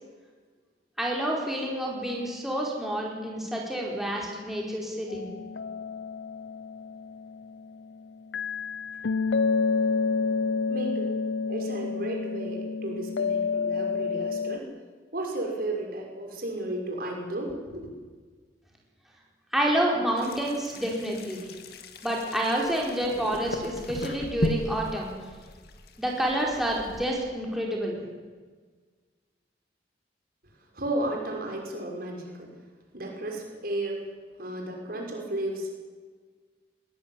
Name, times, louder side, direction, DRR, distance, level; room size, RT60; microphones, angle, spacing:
voice 1, 1.0-5.3 19.5-21.4 22.0-25.1 26.0-28.0, right 1 dB, ahead, -2 dB, 4.8 m, -28 dB
sound 1, 5.1-7.8 8.3-14.6, left 4 dB, 85° left, 0.6 m, -29 dB
voice 2, 10.7-11.2 11.5-14.7 15.1-17.9 30.7-32.5 32.9-34.1 34.4-35.7, right 1 dB, 55° right, 1 dB, 6.1 m, -33 dB
sound 2, 20.2-27.1, left 1 dB, 60° left, 2.3 m, -37 dB
21.5 x 20.0 x 9.8 m, 1.5 s
head